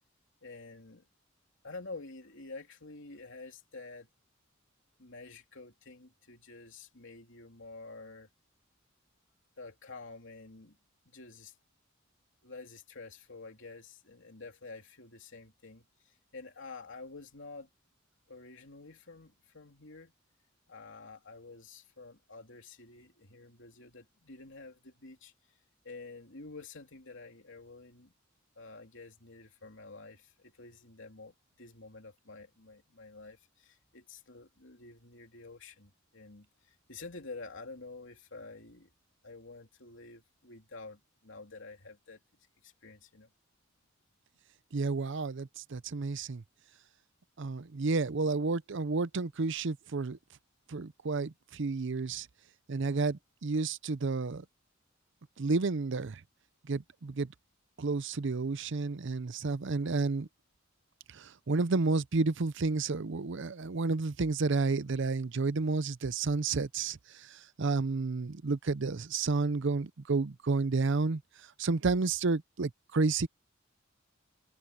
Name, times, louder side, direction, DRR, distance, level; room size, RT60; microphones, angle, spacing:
voice 1, 0.4-1.1 1.6-4.1 5.0-8.3 9.6-10.8 11.0-11.5 12.4-17.7 18.3-20.1 20.7-25.6 25.8-28.1 28.5-38.9 39.2-42.2 42.6-43.3, left 3 dB, 65° left, 3.3 m, -49 dB
voice 2, 44.7-46.4 47.4-50.2 50.7-52.3 52.7-54.4 55.4-56.2 56.7-57.3 57.8-60.3 61.1-71.2 71.6-73.3, right 3 dB, 65° right, 0.6 m, -31 dB
head